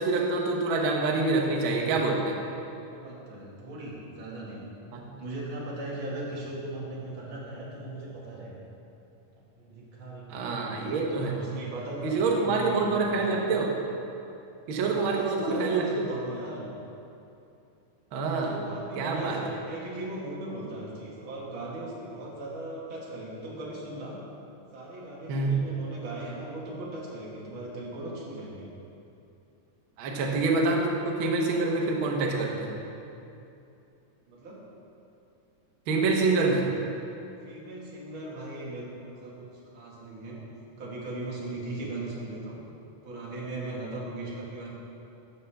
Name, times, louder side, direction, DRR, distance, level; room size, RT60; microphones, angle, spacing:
voice 1, 0.0-2.3 4.9-5.0 10.3-11.3 12.0-13.7 14.7-15.8 18.1-18.5 19.0-19.4 25.3-25.6 30.0-32.7 35.9-36.6, right 3 dB, 80° right, 0 dB, 1.1 m, -26 dB
voice 2, 2.9-4.6 5.2-8.5 9.4-13.2 14.7-16.7 18.3-24.2 24.7-28.7 34.3-34.6 37.4-39.4 39.7-40.4 40.8-42.6 43.0-44.7, right 2 dB, 45° right, -5 dB, 2.1 m, -38 dB
12.5 x 6.8 x 3.4 m, 2.7 s
omnidirectional pair, 3.8 m